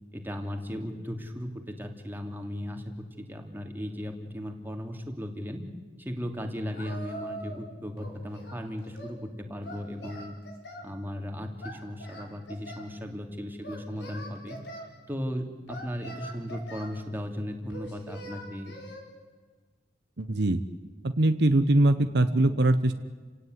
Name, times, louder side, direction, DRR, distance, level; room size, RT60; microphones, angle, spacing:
voice 1, 0.1-2.8 3.2-5.6 6.0-10.3 10.8-14.6 15.1-18.7, equal, 10° right, 3 dB, 3.1 m, -36 dB
Singing, 6.7-7.7 8.0-9.2 9.6-10.9 11.6-12.9 13.6-14.9 15.7-17.0 17.7-19.0, right 1 dB, 70° left, 5.5 m, -42 dB
voice 2, 20.2-20.6 21.0-22.9, right 1 dB, 65° right, 10 dB, 1.1 m, -22 dB
29.5 x 17.5 x 9.6 m, 1.4 s
head